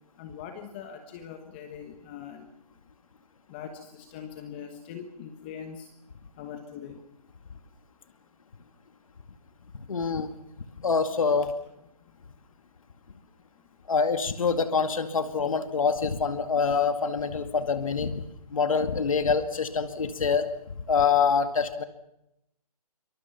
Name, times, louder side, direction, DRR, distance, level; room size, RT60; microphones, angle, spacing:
voice 1, 0.2-2.5 3.5-5.9 6.4-7.0, left 8 dB, 15° left, 6 dB, 1.3 m, -42 dB
voice 2, 9.9-10.3 10.8-11.5 13.9-18.2 18.5-20.5 20.9-21.8, left 5 dB, 60° left, 8 dB, 2.2 m, -25 dB
26.5 x 24.5 x 5.9 m, 0.83 s
hypercardioid pair, 165°, 20 cm